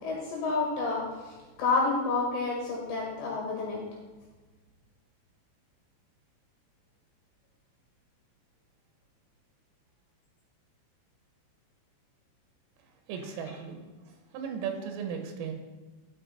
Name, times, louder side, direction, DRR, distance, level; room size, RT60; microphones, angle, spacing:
voice 1, 0.0-3.8, left 3 dB, 70° left, -3 dB, 3.6 m, -29 dB
voice 2, 13.1-15.5, right 7 dB, 85° right, 4 dB, 3.8 m, -37 dB
13.0 x 5.3 x 4.2 m, 1.2 s
omnidirectional pair, 5.7 m